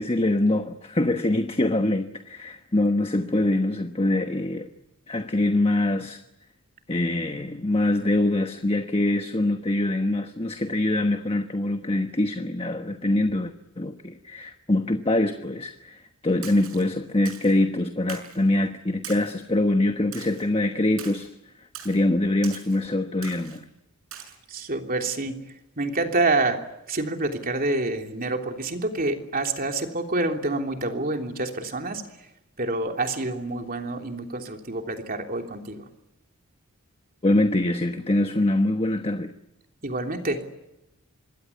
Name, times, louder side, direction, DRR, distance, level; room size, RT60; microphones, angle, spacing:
voice 1, 0.0-4.7 5.1-6.2 6.9-21.3 21.8-23.7 37.2-39.3, left 1 dB, 25° left, 1.2 m, -24 dB
Splash splatter, 16.4-16.8 17.3-17.6 18.1-18.4 19.0-19.4 20.1-20.4 21.0-21.3 21.7-22.0 22.4-22.8 23.2-23.6 24.1-24.4, right 8 dB, 65° right, 6.5 m, -41 dB
voice 2, 24.5-25.4 25.8-32.0 32.6-35.8 39.8-40.5, right 2 dB, 40° right, 3.2 m, -27 dB
26.0 x 21.5 x 9.6 m
head